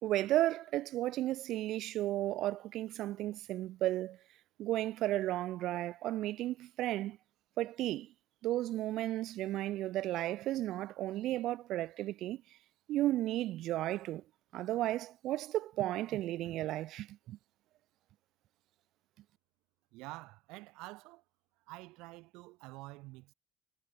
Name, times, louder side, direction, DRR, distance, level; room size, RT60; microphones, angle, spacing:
voice 1, 0.0-4.2 4.6-7.2 7.6-8.1 8.4-12.4 12.9-14.2 14.5-17.4, right 15 dB, 50° right, 0.9 m, -34 dB
voice 2, 19.9-21.2 21.7-23.3, right 22 dB, 70° right, 3.0 m, -48 dB
cardioid pair, 170°, 0 cm